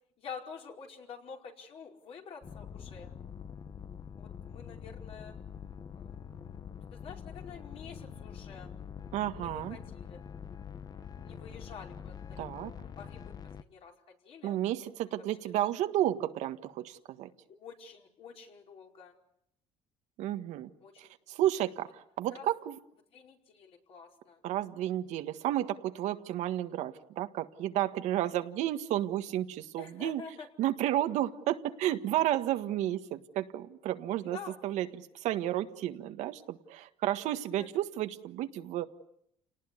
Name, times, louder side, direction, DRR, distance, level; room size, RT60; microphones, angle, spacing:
voice 1, 0.2-3.1 4.1-5.3 5.9-6.1 6.9-8.7 9.0-10.3 11.2-13.3 13.7-14.5 15.1-15.2 15.4-15.5 17.6-19.1 20.8-21.1 22.3-22.5 23.1-24.4 28.2-28.3 29.8-30.5 34.2-34.6 37.6-37.7, left 6 dB, 50° left, 1 dB, 5.0 m, -48 dB
sound 1, 2.4-13.6, left 7 dB, 35° left, 1.1 m, -45 dB
voice 2, 9.1-9.8 12.4-12.7 14.4-17.3 20.2-20.7 21.0-22.7 24.4-30.2 30.6-34.4 34.6-38.8, right 13 dB, 75° right, 9 dB, 1.6 m, -32 dB
29.0 x 19.0 x 9.7 m, 0.76 s
cardioid pair, 125°, 12 cm